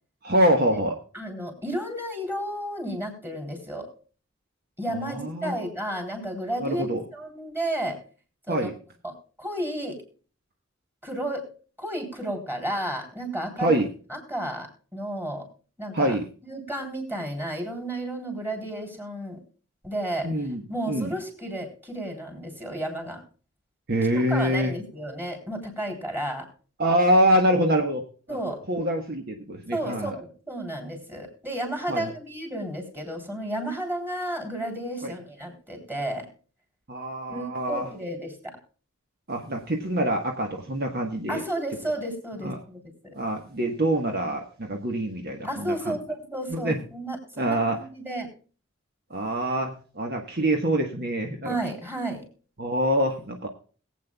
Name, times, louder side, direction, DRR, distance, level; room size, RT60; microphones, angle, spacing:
voice 1, 0.2-0.9 4.9-5.5 6.6-7.0 8.5-8.7 13.6-13.9 15.9-16.3 20.2-20.6 20.9-21.1 23.9-24.7 26.8-28.0 28.7-30.1 31.9-32.1 35.0-35.1 36.9-37.9 39.3-41.4 42.4-42.6 43.1-46.0 46.5-46.8 47.4-47.8 49.1-51.5 52.6-53.5, right 1 dB, 50° right, 3 dB, 1.4 m, -25 dB
voice 2, 1.1-3.9 4.8-8.0 8.5-8.7 9.0-10.0 11.0-11.4 11.8-13.8 14.1-15.5 15.8-16.2 16.4-19.4 19.8-20.3 20.7-23.2 24.1-26.5 28.3-28.6 29.7-36.3 37.3-38.6 41.3-43.1 45.4-48.3 51.4-52.2, right 1 dB, 10° right, 3 dB, 3.7 m, -32 dB
21.5 x 8.5 x 2.3 m, 0.38 s
head